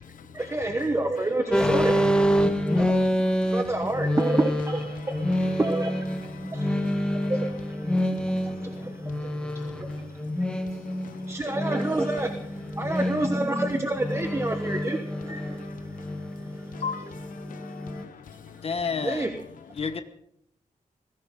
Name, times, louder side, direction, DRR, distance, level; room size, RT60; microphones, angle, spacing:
voice 1, 0.3-2.0 2.7-10.8 11.1-17.1 18.5-18.6 19.0-19.3, right 2 dB, 20° right, 1.1 m, -30 dB
sound 1, 1.5-18.0, equal, 5° left, 1.7 m, -27 dB
voice 2, 2.4-3.6 6.4-7.3 8.0-10.1 10.6-11.4 15.6-18.6, left 6 dB, 75° left, 0.9 m, -43 dB
voice 3, 18.6-19.4 19.7-20.0, left 5 dB, 45° left, 1.2 m, -30 dB
21.0 x 16.0 x 3.8 m
wide cardioid pair, 115°, 14 cm